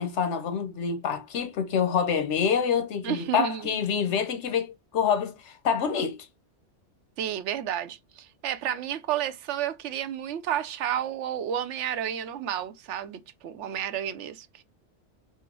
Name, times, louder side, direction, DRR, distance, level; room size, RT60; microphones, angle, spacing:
voice 1, 0.0-6.2, left 7 dB, 80° left, 1.1 m, -26 dB
voice 2, 3.0-3.8 7.2-14.6, right 10 dB, 85° right, 0.9 m, -31 dB
4.5 x 2.1 x 4.6 m
omnidirectional pair, 1.2 m